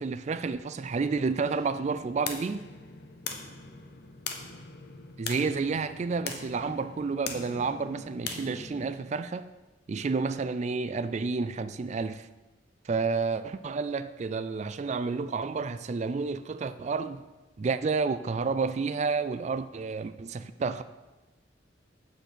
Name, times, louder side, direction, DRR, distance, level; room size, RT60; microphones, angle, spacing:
voice 1, 0.0-2.6 5.2-9.5 9.9-12.3 12.8-17.2 17.6-20.8, right 4 dB, 40° right, 0.3 m, -30 dB
sound 1, 1.5-8.9, left 5 dB, 60° left, 0.9 m, -41 dB
7.9 x 6.4 x 6.3 m
head